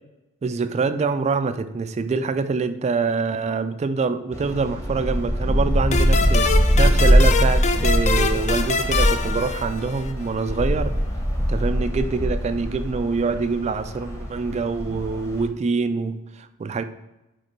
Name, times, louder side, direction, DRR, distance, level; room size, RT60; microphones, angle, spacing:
voice 1, 0.4-6.5 6.8-10.9 11.5-16.8, right 4 dB, 30° right, 10 dB, 0.3 m, -25 dB
sound 1, 4.3-15.5, equal, 15° left, 1.0 m, -22 dB
sound 2, 5.9-10.3, left 4 dB, 30° left, 0.5 m, -25 dB
6.4 x 4.4 x 4.5 m, 0.97 s
head